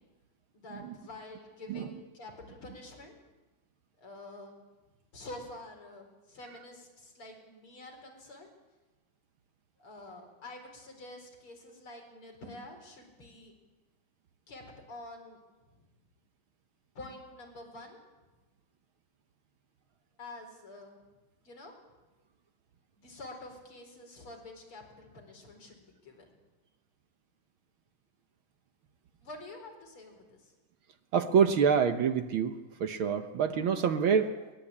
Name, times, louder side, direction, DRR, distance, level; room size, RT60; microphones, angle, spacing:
voice 1, 0.5-3.1 4.0-4.6 5.1-8.5 9.8-13.6 14.5-15.4 15.7-15.9 17.0-18.0 20.2-21.0 21.4-21.7 23.0-26.3 29.2-30.5, left 2 dB, 40° left, 3 dB, 5.2 m, -48 dB
voice 2, 31.1-34.5, right 7 dB, 70° right, 8 dB, 1.2 m, -27 dB
23.0 x 19.5 x 8.6 m, 1.2 s
omnidirectional pair, 3.8 m